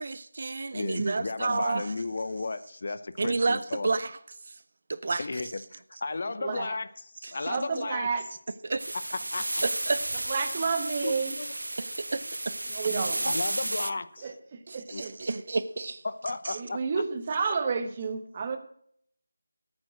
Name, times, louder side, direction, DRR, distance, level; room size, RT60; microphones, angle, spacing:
voice 1, 0.0-1.9 3.2-4.2 4.5-4.6 4.9-5.4 7.2-7.5 8.6-8.8 9.6-10.0 11.8-12.5 12.9-13.0 14.7-16.0 16.4-16.6, right 3 dB, 45° right, 0.6 m, -30 dB
voice 2, 0.7-3.9 5.2-6.9 7.2-8.1 9.3-9.6 11.0-11.5 13.2-14.3 14.9-15.0 16.0-16.8, left 3 dB, 45° left, 0.8 m, -34 dB
voice 3, 6.4-6.8 7.3-8.2 10.3-11.4 12.7-13.2 14.2-15.1 16.5-18.6, right 5 dB, 25° right, 1.3 m, -30 dB
sound 1, 8.8-13.9, right 1 dB, 85° right, 0.7 m, -33 dB
14.5 x 8.9 x 6.2 m
figure-of-eight pair, 170°, 0 cm